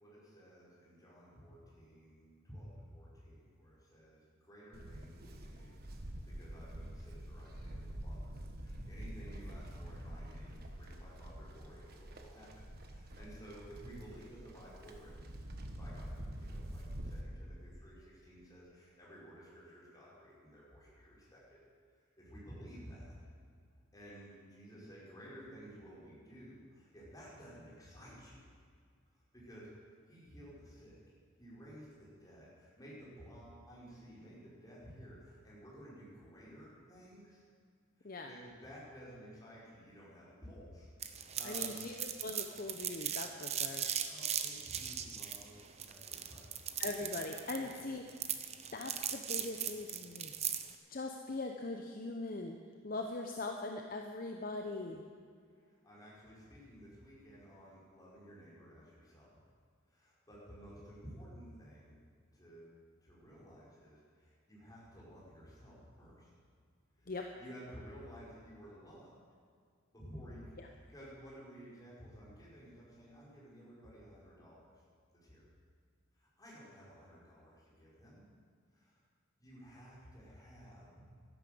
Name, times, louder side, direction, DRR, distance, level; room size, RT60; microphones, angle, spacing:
voice 1, 0.0-15.3 15.6-21.6 22.2-23.2 23.9-28.4 29.1-29.7 30.1-31.0 31.4-37.4 38.0-41.8 44.1-46.7 47.5-47.8 55.5-59.4 59.9-62.0 62.3-62.7 63.0-66.3 67.0-69.1 69.9-74.8 75.1-75.4 76.1-78.3 78.7-79.0 79.4-81.0, equal, 20° left, -7 dB, 5.0 m, -54 dB
Livestock farm animals working animals, 4.7-17.2, right 1 dB, 50° right, 1.3 m, -47 dB
sound 1, 41.0-50.7, right 9 dB, 30° right, 0.8 m, -38 dB
voice 2, 41.4-43.9 46.8-48.0 48.7-50.3 50.9-52.5 52.8-55.0 67.1-67.2 70.6-70.7, left 3 dB, 45° left, 3 dB, 0.8 m, -41 dB
12.5 x 11.5 x 7.8 m, 2.1 s
head